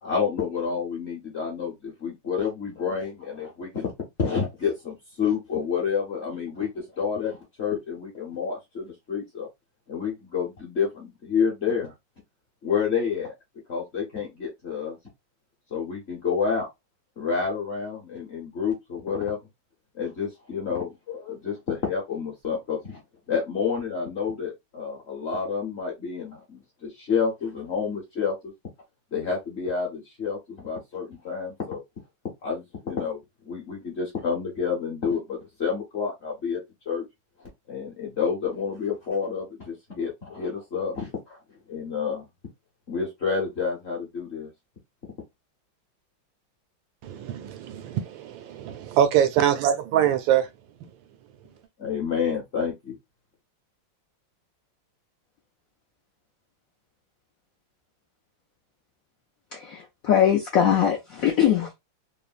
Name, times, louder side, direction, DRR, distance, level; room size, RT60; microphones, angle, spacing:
voice 1, 0.0-3.9 4.2-9.5 9.9-11.9 12.6-13.3 13.7-15.0 15.7-16.7 17.2-19.4 19.9-23.0 23.3-28.5 29.1-31.8 32.4-36.6 36.9-37.1 37.4-41.4 41.7-42.2 42.9-44.5 51.8-53.0, left 6 dB, 50° left, 0.9 m, -29 dB
voice 2, 47.0-50.5, right 10 dB, 80° right, 1.3 m, -23 dB
voice 3, 59.5-61.8, left 9 dB, 75° left, 0.8 m, -22 dB
3.2 x 2.0 x 2.4 m
omnidirectional pair, 2.1 m